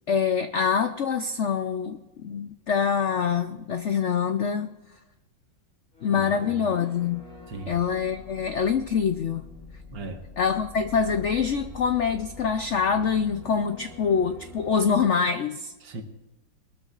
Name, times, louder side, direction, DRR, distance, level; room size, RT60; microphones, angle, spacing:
voice 1, 0.1-4.7 6.0-7.2 7.7-9.5 10.4-15.7, left 6 dB, 85° left, 8 dB, 0.6 m, -25 dB
sound 1, 5.9-15.1, left 3 dB, 40° left, 3.3 m, -45 dB
voice 2, 6.1-6.6 7.5-7.8 9.9-10.2 15.8-16.0, right 4 dB, 75° right, 5 dB, 2.0 m, -38 dB
22.0 x 13.0 x 2.5 m, 1.1 s
omnidirectional pair, 2.0 m